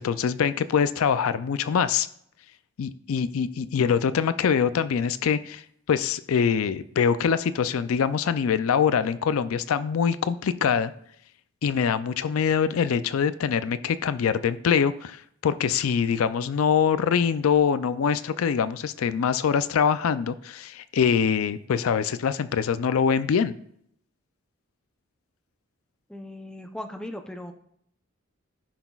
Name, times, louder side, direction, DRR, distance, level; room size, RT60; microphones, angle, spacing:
voice 1, 0.0-2.1 2.8-10.9 11.6-23.5, left 7 dB, 75° left, 14 dB, 0.4 m, -24 dB
voice 2, 26.1-27.5, left 1 dB, 5° left, 4 dB, 0.5 m, -38 dB
14.5 x 5.9 x 2.3 m, 0.68 s
head